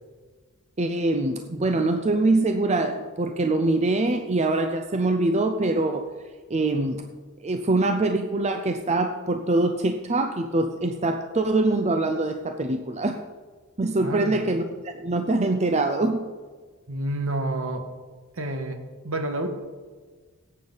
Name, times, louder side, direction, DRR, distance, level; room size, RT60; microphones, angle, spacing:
voice 1, 0.8-6.1 6.5-13.2 13.8-16.3, right 2 dB, 30° right, 6 dB, 0.6 m, -24 dB
voice 2, 14.0-14.5 16.9-17.8 18.3-18.8 19.0-19.5, right 1 dB, 65° right, 5 dB, 1.6 m, -29 dB
17.0 x 8.7 x 4.0 m, 1.5 s
head